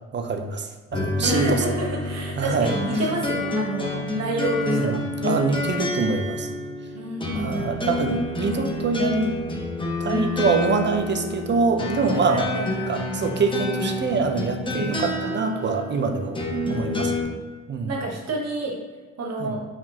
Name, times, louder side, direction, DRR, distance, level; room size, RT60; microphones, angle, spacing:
voice 1, 0.1-1.6 2.4-2.7 4.6-6.5 7.3-9.3 10.0-12.5 12.9-16.4 16.7-17.1 17.7-17.9 19.4-19.5, right 4 dB, 35° right, 5 dB, 0.5 m, -24 dB
sound 1, 0.9-17.2, left 2 dB, 15° left, 0.8 m, -28 dB
voice 2, 1.2-5.0 6.9-7.6 12.3-13.0 14.6-15.1 16.5-17.1 17.9-18.8 19.2-19.7, right 2 dB, 60° right, -2 dB, 1.3 m, -29 dB
4.8 x 3.5 x 2.9 m, 1.4 s
cardioid pair, 90°, 30 cm